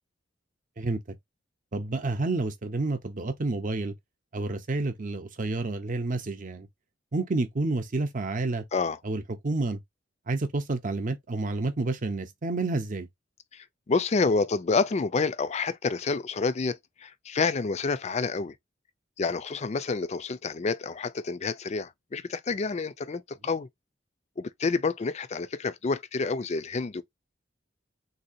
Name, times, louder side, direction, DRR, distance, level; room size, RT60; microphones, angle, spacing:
voice 1, 1.7-4.0 4.3-6.7 7.1-8.7 9.0-9.8 10.3-13.1, right 2 dB, 40° right, 0.7 m, -29 dB
voice 2, 13.5-18.5 19.2-23.7 24.4-27.0, left 4 dB, 35° left, 0.4 m, -28 dB
3.7 x 2.7 x 2.6 m
head